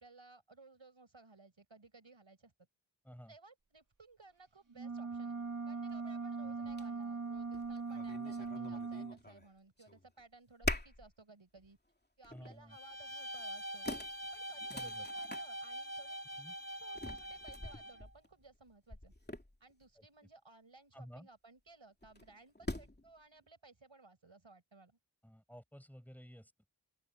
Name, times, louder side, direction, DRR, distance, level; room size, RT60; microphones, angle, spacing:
voice 1, 0.0-2.5 3.2-11.8 12.2-13.9 14.3-16.2 16.7-19.1 19.6-25.0, right 3 dB, 80° right, 6.7 m, -60 dB
sound 1, 4.7-9.2, right 4 dB, 45° right, 1.4 m, -40 dB
sound 2, 5.9-6.0 6.7-6.9 7.3-9.5 9.8-10.2 10.6-11.1 11.6-11.7 12.2-12.6 13.4-13.5 13.9-15.5 16.9-19.8 22.0-23.1, left 1 dB, 20° left, 2.7 m, -44 dB
voice 2, 12.3-12.8 14.7-15.0 16.4-16.5 20.0-20.1 20.9-21.3 25.2-26.7, equal, 5° left, 5.9 m, -53 dB
Bowed string instrument, 12.7-18.1, right 1 dB, 25° right, 5.4 m, -44 dB
open air
wide cardioid pair, 45°, 46 cm